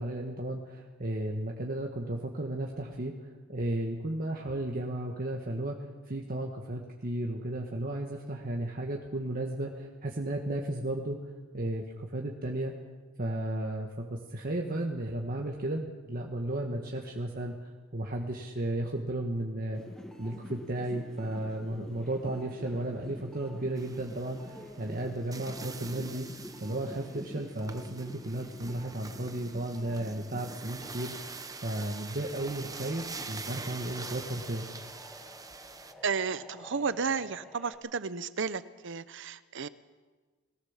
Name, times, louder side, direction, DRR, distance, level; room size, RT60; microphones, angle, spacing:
voice 1, 0.0-5.8 6.1-11.2 11.5-12.7 13.2-19.8 20.2-26.3 26.6-31.1 31.6-34.7, right 1 dB, 45° right, 1 dB, 1.7 m, -34 dB
sound 1, 19.7-31.0 31.4-37.7, equal, 5° left, 1.9 m, -49 dB
sound 2, 23.8-35.9, right 4 dB, 20° right, 1.1 m, -45 dB
voice 2, 36.0-39.7, right 5 dB, 65° right, 15 dB, 0.8 m, -33 dB
21.0 x 17.5 x 7.4 m, 1.4 s
head